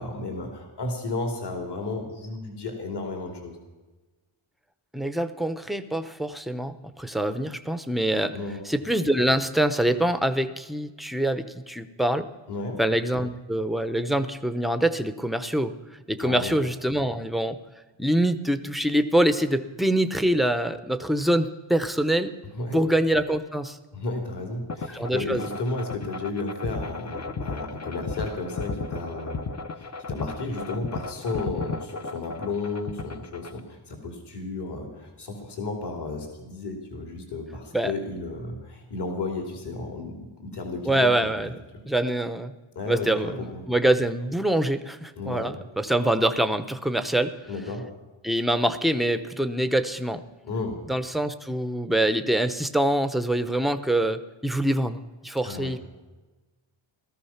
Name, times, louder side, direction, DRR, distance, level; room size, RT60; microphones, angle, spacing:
voice 1, 0.0-3.6 8.3-8.6 12.5-12.8 16.2-16.5 22.6-22.8 23.9-41.3 42.7-43.6 45.2-45.5 47.5-47.9 50.4-50.8 55.4-55.7, left 3 dB, 55° left, 3 dB, 2.9 m, -33 dB
voice 2, 4.9-8.3 8.6-12.3 12.8-15.7 16.1-17.6 18.0-22.3 22.7-23.8 24.9-25.5 37.7-37.9 40.8-41.6 41.9-42.5 42.9-47.3 48.2-50.2 50.9-55.8, right 1 dB, ahead, 10 dB, 0.7 m, -25 dB
sound 1, 24.7-33.6, left 3 dB, 35° left, 0.8 m, -34 dB
17.5 x 14.0 x 5.8 m, 1.2 s
wide cardioid pair, 140°, 48 cm